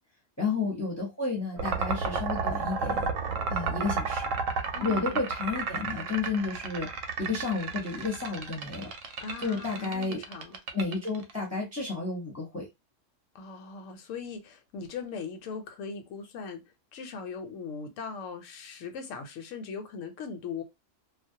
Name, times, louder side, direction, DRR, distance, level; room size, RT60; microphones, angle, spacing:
voice 1, 0.4-3.1 3.5-4.2 4.8-6.9 7.2-8.9 9.4-10.2 10.7-12.7, left 4 dB, 15° left, 0.7 m, -31 dB
sound 1, 1.6-11.3, right 5 dB, 90° right, 1.0 m, -32 dB
voice 2, 4.7-5.2 9.2-10.6 13.3-16.6 16.9-20.6, left 5 dB, 80° left, 1.0 m, -39 dB
2.4 x 2.0 x 2.7 m
omnidirectional pair, 1.3 m